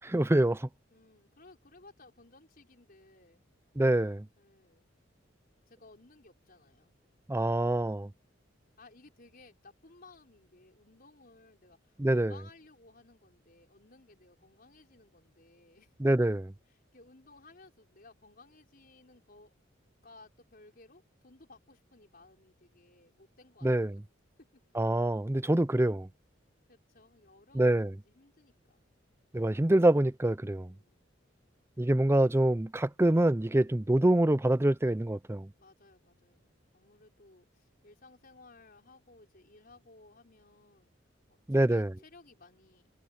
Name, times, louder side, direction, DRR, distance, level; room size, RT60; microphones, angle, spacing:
voice 1, 0.0-0.7 3.8-4.3 7.3-8.1 12.0-12.3 16.0-16.5 23.6-24.0 24.7-26.1 27.5-27.9 29.3-30.7 31.8-35.5 41.5-41.9, right 1 dB, 15° right, 0.5 m, -25 dB
voice 2, 0.9-3.5 4.4-4.9 5.7-6.9 8.8-16.0 16.7-19.5 20.0-24.0 24.4-24.6 26.7-28.8 30.5-31.1 35.6-40.9 41.3-42.9, left 3 dB, 50° left, 5.0 m, -58 dB
head